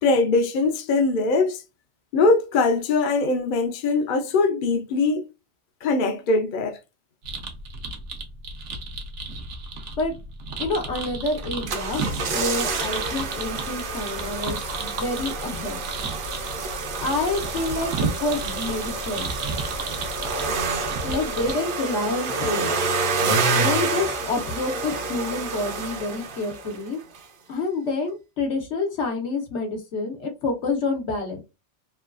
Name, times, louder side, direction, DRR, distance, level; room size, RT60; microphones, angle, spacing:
voice 1, 0.0-1.6 2.1-5.3 5.8-6.8, left 3 dB, 55° left, 0.6 m, -21 dB
sound 1, 7.2-21.5, right 3 dB, 85° right, 1.0 m, -34 dB
voice 2, 10.6-15.8 17.0-19.3 21.0-22.7 23.5-27.0 27.5-31.4, left 3 dB, 80° left, 1.2 m, -28 dB
sound 2, 11.4-26.9 27.1-27.2, right 3 dB, 55° right, 0.7 m, -28 dB
3.1 x 2.3 x 2.3 m
omnidirectional pair, 1.2 m